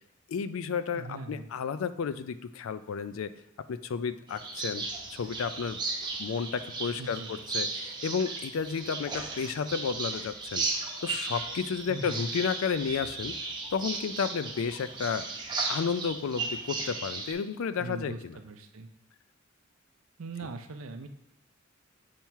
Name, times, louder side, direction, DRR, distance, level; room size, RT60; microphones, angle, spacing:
voice 1, 0.3-3.3 3.7-5.8 6.2-10.7 11.0-13.3 13.7-15.2 15.7-18.3, left 6 dB, 75° left, 13 dB, 0.4 m, -32 dB
voice 2, 0.9-1.5 7.0-7.4 11.9-12.2 17.8-18.9 20.2-21.1, right 3 dB, 90° right, 7 dB, 0.6 m, -40 dB
sound 1, 4.3-17.3, right 3 dB, 20° right, 0.8 m, -36 dB
7.2 x 3.0 x 4.5 m, 0.84 s
head